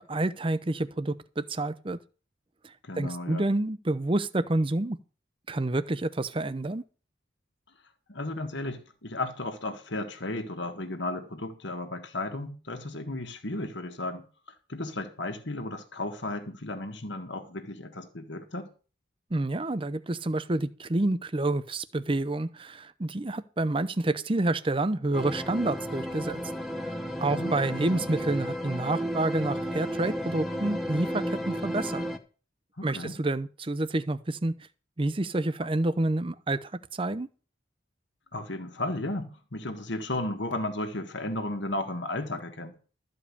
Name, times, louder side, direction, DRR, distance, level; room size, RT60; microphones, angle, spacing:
voice 1, 0.1-2.0 2.9-5.0 5.5-6.8 19.3-26.4 26.8-32.0 32.8-34.5 35.0-37.3, right 2 dB, 25° right, 0.6 m, -28 dB
voice 2, 2.8-3.5 8.1-14.2 14.7-18.7 27.3-28.1 32.8-33.1 38.3-42.7, left 2 dB, 65° left, 1.6 m, -34 dB
sound 1, 25.1-32.2, equal, ahead, 1.1 m, -33 dB
13.0 x 5.1 x 8.4 m
head